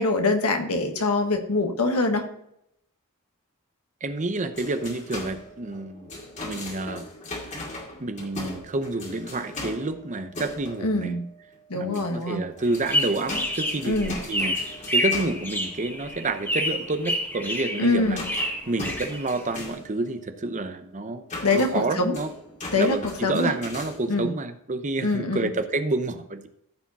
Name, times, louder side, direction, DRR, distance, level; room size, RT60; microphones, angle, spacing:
voice 1, 0.0-2.3 10.8-11.2 11.7-12.4 13.8-14.1 17.8-18.2 21.4-22.2 22.7-23.0 23.2-23.5 24.1-24.3 25.0-25.5, left 3 dB, 80° left, 5 dB, 1.5 m, -24 dB
voice 2, 4.0-6.1 6.4-7.1 8.0-11.1 11.7-18.2 18.7-21.2 21.5-22.3 22.7-26.5, right 2 dB, 35° right, 9 dB, 0.8 m, -29 dB
sound 1, 4.5-11.6 11.8-24.3, left 2 dB, 35° left, 2.2 m, -39 dB
sound 2, 12.6-19.7, left 1 dB, 10° left, 1.7 m, -29 dB
14.0 x 4.9 x 4.1 m, 0.76 s
head